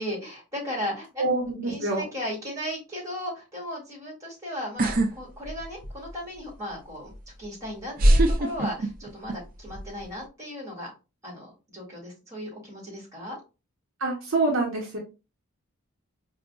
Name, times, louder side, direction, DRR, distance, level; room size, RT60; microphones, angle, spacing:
voice 1, 0.0-1.2 1.7-10.9 11.2-13.4, equal, 15° right, -4 dB, 1.8 m, -36 dB
voice 2, 1.2-2.0 14.0-15.0, right 2 dB, 60° right, -2 dB, 1.0 m, -26 dB
sound 1, 4.8-5.1 5.5-6.1 7.1-7.2 8.0-9.3 9.6-10.1, right 1 dB, 40° right, 0.4 m, -21 dB
4.8 x 2.4 x 2.3 m, 0.29 s
head